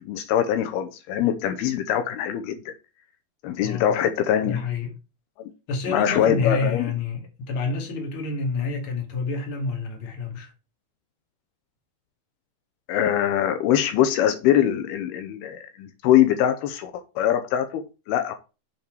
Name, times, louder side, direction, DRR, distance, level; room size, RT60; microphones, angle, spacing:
voice 1, 0.0-2.7 3.4-4.6 5.4-5.5 5.9-6.9 12.9-18.4, left 10 dB, 80° left, 2.6 m, -23 dB
voice 2, 3.6-3.9 4.4-4.9 5.7-10.5, left 4 dB, 40° left, 2.3 m, -28 dB
6.8 x 5.4 x 4.6 m
omnidirectional pair, 4.6 m